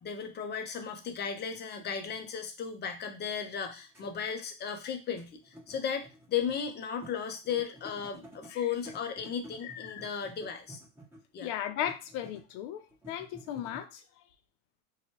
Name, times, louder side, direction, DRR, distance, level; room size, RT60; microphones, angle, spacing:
voice 1, 0.0-10.8 11.3-11.5, left 7 dB, 25° left, 0.5 m, -35 dB
sound 1, 1.0-1.1 2.1-2.2 3.5-3.6 3.9-6.7 7.0-7.1 7.4-8.5 8.9-11.3 11.8-12.6 12.9-13.8, right 1 dB, 5° right, 1.2 m, -52 dB
voice 2, 9.6-10.1 11.4-14.0, left 10 dB, 65° left, 0.6 m, -36 dB
2.8 x 2.3 x 2.8 m
supercardioid pair, 110°, 38 cm